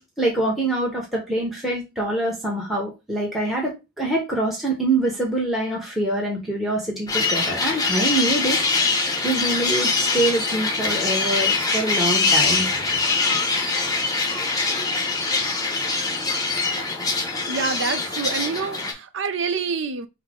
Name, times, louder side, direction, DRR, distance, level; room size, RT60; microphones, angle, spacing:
voice 1, 0.0-8.6 9.2-12.7, right 1 dB, ahead, 1.0 m, -25 dB
sound 1, 7.1-18.9, left 3 dB, 20° left, 0.7 m, -23 dB
voice 2, 17.5-20.1, right 5 dB, 60° right, 0.5 m, -27 dB
5.5 x 2.1 x 3.7 m
head